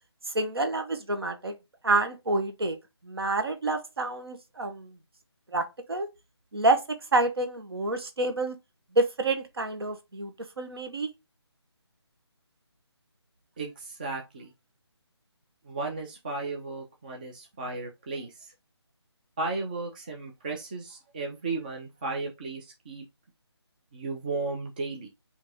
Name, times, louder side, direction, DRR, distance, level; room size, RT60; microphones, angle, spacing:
voice 1, 0.3-1.6 1.8-2.8 3.0-4.9 5.5-6.1 6.5-8.6 8.9-10.3 10.6-11.1, right 2 dB, 60° right, 1.1 m, -28 dB
voice 2, 13.6-14.5 15.6-18.5 19.4-23.0 23.9-25.1, right 3 dB, 20° right, 0.4 m, -35 dB
4.5 x 2.7 x 3.6 m
figure-of-eight pair, 150°, 14 cm